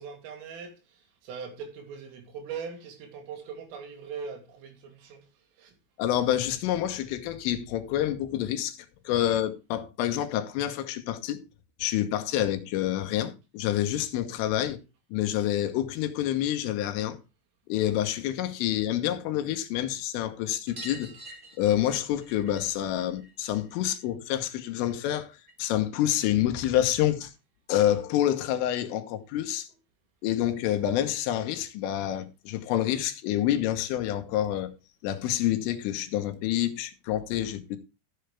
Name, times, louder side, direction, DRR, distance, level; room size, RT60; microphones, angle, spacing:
voice 1, 0.0-5.3 5.6-5.8, right 6 dB, 85° right, 5.2 m, -41 dB
voice 2, 6.0-8.8 9.1-11.4 11.8-14.8 15.1-17.2 17.7-21.1 21.6-27.3 27.7-29.7 30.2-34.8 35.0-37.8, left 12 dB, 85° left, 3.7 m, -28 dB
sound 1, 20.7-25.8 26.1-27.2 28.6-28.7 28.9-29.0 29.3-29.4 30.7-30.8 31.1-31.2 31.5-31.6 32.8-32.9 33.7-33.8, right 1 dB, 20° right, 1.6 m, -49 dB
14.0 x 7.9 x 3.4 m
omnidirectional pair, 5.7 m